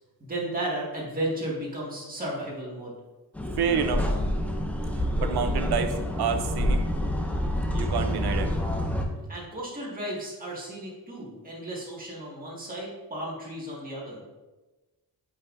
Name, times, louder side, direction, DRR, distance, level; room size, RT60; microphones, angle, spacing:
voice 1, 0.2-2.9 9.2-14.2, right 1 dB, 20° right, -5 dB, 1.8 m, -34 dB
sound 1, 3.3-9.0, equal, 5° left, 0.5 m, -27 dB
voice 2, 3.6-4.1 5.2-6.8 7.7-8.5, right 6 dB, 85° right, 8 dB, 0.7 m, -28 dB
8.1 x 5.5 x 2.6 m, 1.1 s
wide cardioid pair, 155°, 38 cm